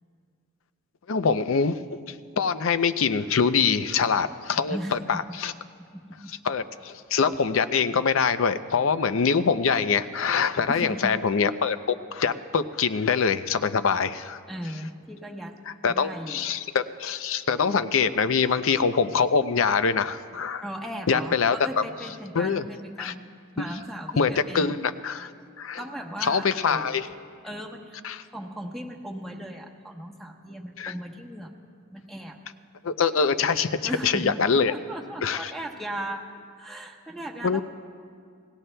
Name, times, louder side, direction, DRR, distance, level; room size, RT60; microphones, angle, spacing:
voice 1, 1.1-1.8 2.4-5.5 6.4-14.4 15.7-20.6 21.1-21.6 22.3-22.7 23.0-23.1 24.2-25.3 25.6-25.8 26.2-27.1 28.0-28.2 30.8-30.9 32.8-34.7 35.2-35.5 37.4-37.6, left 5 dB, 65° left, 12 dB, 0.5 m, -24 dB
voice 2, 4.7-5.4 5.9-6.3 10.7-11.2 14.5-15.6 15.9-16.5 20.6-23.2 23.5-24.8 25.8-27.0 27.4-28.0 28.3-31.5 31.9-32.4 33.8-36.2 36.6-37.6, equal, ahead, 1 dB, 1.0 m, -37 dB
28.5 x 19.5 x 2.2 m, 2.2 s
head